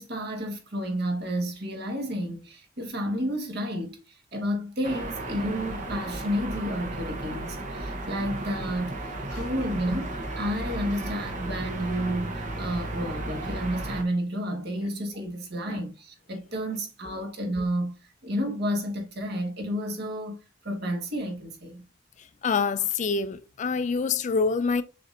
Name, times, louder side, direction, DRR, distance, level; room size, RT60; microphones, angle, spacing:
voice 1, 0.0-9.0 9.3-17.9 18.2-20.4 20.6-21.8, equal, 60° right, 1.2 m, -31 dB
sound 1, 4.8-14.0, right 2 dB, 40° right, 0.8 m, -34 dB
voice 2, 22.4-24.8, left 5 dB, 40° left, 0.3 m, -26 dB
6.7 x 2.6 x 2.6 m
head